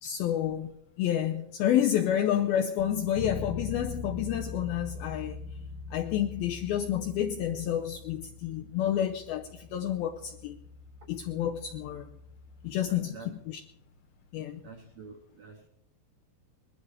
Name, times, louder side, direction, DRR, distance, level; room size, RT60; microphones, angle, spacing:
voice 1, 0.0-5.4 5.9-10.6 11.1-12.0 12.6-13.6 14.3-14.6, left 10 dB, 85° left, 2.2 m, -29 dB
sound 1, 2.8-15.1, left 1 dB, 55° right, 1.1 m, -50 dB
Bass guitar, 3.1-12.9, left 3 dB, 70° left, 1.8 m, -43 dB
voice 2, 12.9-13.3 14.6-15.7, right 4 dB, 85° right, 1.5 m, -48 dB
21.0 x 12.5 x 5.0 m
omnidirectional pair, 5.2 m